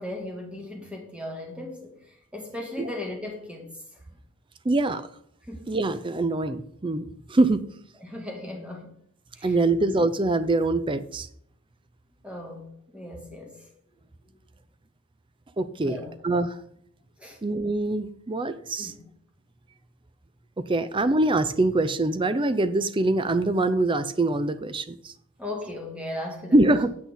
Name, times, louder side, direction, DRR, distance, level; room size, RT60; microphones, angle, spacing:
voice 1, 0.0-3.7 5.5-5.7 8.0-8.9 9.3-9.6 12.2-13.7 15.8-16.1 17.2-17.4 18.8-19.0 25.4-26.7, left 1 dB, 5° right, 0 dB, 2.0 m, -37 dB
voice 2, 4.6-5.0 5.7-7.6 9.4-11.3 15.6-16.0 16.2-16.5 17.4-18.9 20.7-25.1 26.5-26.9, right 2 dB, 20° right, 11 dB, 0.5 m, -24 dB
8.4 x 8.3 x 3.9 m, 0.66 s
head